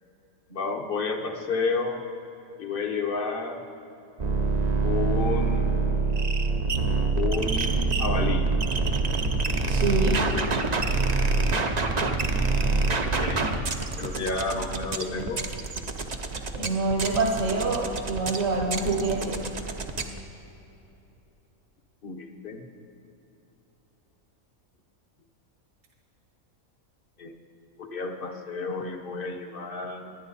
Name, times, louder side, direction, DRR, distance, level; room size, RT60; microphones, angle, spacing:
voice 1, 0.5-2.0 2.6-3.6 4.8-5.8 7.1-8.4 13.0-13.5 14.0-15.4 22.0-22.6 27.2-27.3 27.8-30.2, left 4 dB, 40° left, 4 dB, 1.2 m, -31 dB
sound 1, 4.2-20.2, right 3 dB, 35° right, 0.7 m, -26 dB
voice 2, 9.7-10.2 16.5-19.4, right 3 dB, 65° right, 1 dB, 1.7 m, -26 dB
28.0 x 10.0 x 4.1 m, 2.8 s
omnidirectional pair, 1.5 m